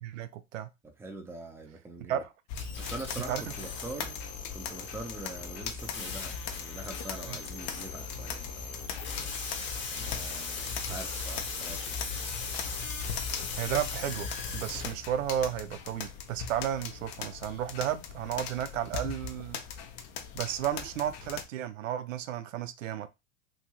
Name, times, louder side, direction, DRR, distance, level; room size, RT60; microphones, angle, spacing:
voice 1, 0.0-0.7 2.1-2.3 3.3-3.4 7.3-7.4 10.9-11.0 13.6-19.6 20.3-23.1, right 10 dB, 80° right, 0.5 m, -33 dB
voice 2, 0.8-2.2 2.8-4.2 4.5-9.1 9.8-12.0, right 2 dB, 5° right, 0.5 m, -44 dB
sound 1, 2.5-21.4, left 6 dB, 50° left, 0.6 m, -40 dB
sound 2, 2.5-14.9, left 5 dB, 30° left, 0.9 m, -39 dB
3.1 x 2.6 x 2.2 m
hypercardioid pair, 95°, 38 cm